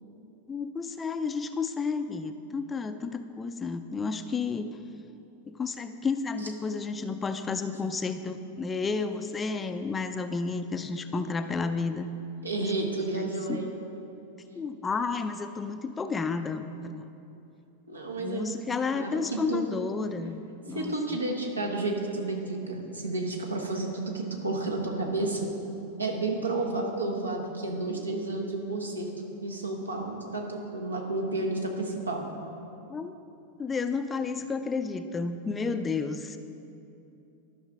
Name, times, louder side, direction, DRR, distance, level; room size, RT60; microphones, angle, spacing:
voice 1, 0.5-4.8 5.5-12.1 12.6-12.7 13.2-13.6 14.5-17.1 18.2-20.4 20.7-21.2 32.9-33.1 33.6-36.4, left 4 dB, 15° left, 9 dB, 0.4 m, -31 dB
voice 2, 12.4-13.7 17.9-18.6 18.9-19.6 20.7-25.5 26.0-29.1 29.4-32.2, right 2 dB, 80° right, 1 dB, 1.0 m, -31 dB
12.0 x 5.5 x 3.6 m, 2.8 s
figure-of-eight pair, 90°, 0 cm